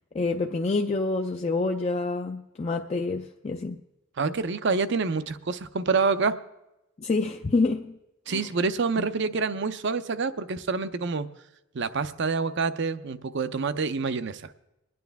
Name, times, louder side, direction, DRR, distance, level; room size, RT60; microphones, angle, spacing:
voice 1, 0.1-3.8 7.0-8.0 8.3-8.5 9.0-9.1, left 3 dB, 30° left, 4 dB, 0.4 m, -27 dB
voice 2, 4.2-6.3 8.3-11.3 11.7-14.4, right 4 dB, 55° right, 13 dB, 0.5 m, -27 dB
23.5 x 9.4 x 3.4 m, 0.95 s
head